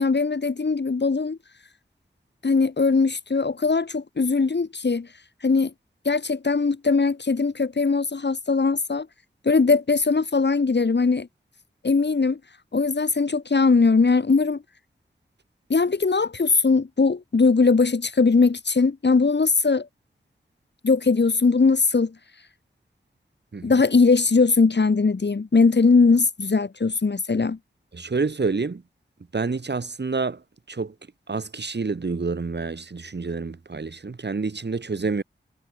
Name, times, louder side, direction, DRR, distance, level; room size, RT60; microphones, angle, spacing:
voice 1, 0.0-1.4 2.4-5.1 5.4-5.7 6.0-9.1 9.4-11.3 11.8-12.4 12.7-14.6 15.7-19.9 20.8-22.1 23.6-27.6, left 4 dB, 65° left, 4.3 m, -20 dB
voice 2, 27.9-28.8 29.3-30.4 30.7-30.9 31.3-35.2, right 4 dB, 60° right, 4.5 m, -28 dB
cardioid pair, 40°, 20 cm